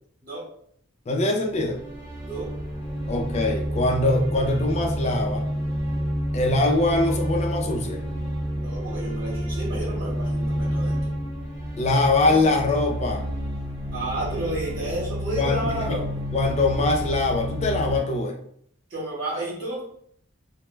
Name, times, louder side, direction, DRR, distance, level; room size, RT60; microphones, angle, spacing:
voice 1, 1.1-1.8 3.1-5.5 6.3-8.0 11.8-13.2 15.3-16.0 16.3-18.4, left 2 dB, 30° left, 2 dB, 0.3 m, -23 dB
sound 1, 1.5-18.0, equal, 15° right, 0.7 m, -29 dB
voice 2, 8.5-11.1 13.9-16.2 18.9-19.8, right 1 dB, 55° right, -8 dB, 1.1 m, -31 dB
2.1 x 2.0 x 3.1 m, 0.65 s
head